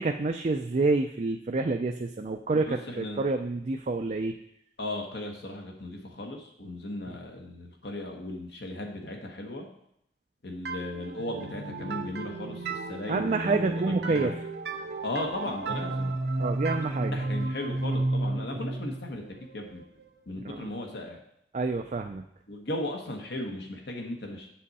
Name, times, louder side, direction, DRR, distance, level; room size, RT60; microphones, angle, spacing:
voice 1, 0.0-4.3 7.1-7.2 13.1-14.3 16.4-17.2 20.4-20.7 21.5-22.2, right 3 dB, 40° right, 5 dB, 0.4 m, -28 dB
voice 2, 2.5-3.2 4.8-9.7 10.4-14.3 15.0-16.1 17.1-19.2 19.5-19.8 20.3-21.2 22.5-24.5, left 1 dB, 65° left, 2 dB, 1.2 m, -36 dB
sound 1, 10.7-20.2, right 2 dB, 70° right, 0.9 m, -33 dB
7.6 x 7.6 x 4.2 m, 0.75 s
head